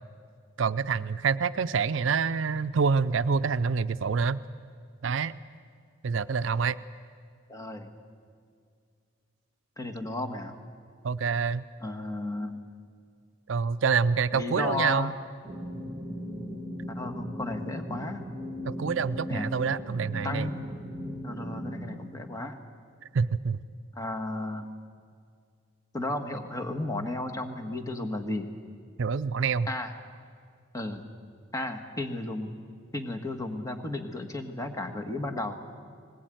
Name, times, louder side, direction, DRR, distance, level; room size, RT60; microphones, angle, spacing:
voice 1, 0.6-4.4 5.0-5.4 6.0-6.8 11.0-11.6 13.5-15.1 18.6-20.5 23.1-23.6 29.0-29.7, right 5 dB, 65° right, 14 dB, 0.5 m, -26 dB
voice 2, 7.5-7.9 9.8-10.6 11.8-12.6 14.3-15.1 16.9-18.2 19.3-19.5 20.2-20.5 21.2-22.6 23.9-24.7 25.9-28.5 29.7-29.9 30.7-31.0 31.5-32.5 32.9-35.6, left 2 dB, 15° left, 3 dB, 1.5 m, -34 dB
sound 1, 15.4-22.0, equal, 15° right, 1.8 m, -37 dB
19.5 x 19.5 x 9.1 m, 2.2 s
head